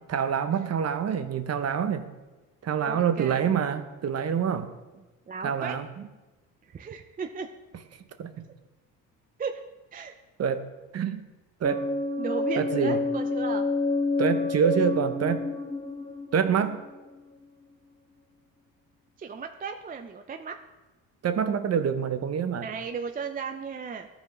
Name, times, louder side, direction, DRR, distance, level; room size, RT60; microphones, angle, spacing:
voice 1, 0.1-2.1 2.6-4.7 5.4-5.9 8.2-8.3 10.4-10.6 10.9-11.2 11.6-11.9 12.6-13.0 14.2-15.4 16.3-16.8 21.2-22.7, right 7 dB, 40° right, 10 dB, 0.8 m, -26 dB
voice 2, 2.8-3.5 5.3-5.8 6.7-7.5 9.4-9.6 9.9-10.1 12.2-13.6 19.2-20.5 22.6-24.1, right 5 dB, 25° right, 5 dB, 0.4 m, -35 dB
sound 1, 11.6-17.4, left 3 dB, 15° left, 1.9 m, -29 dB
13.5 x 5.0 x 3.1 m, 1.2 s
supercardioid pair, 80°, 37 cm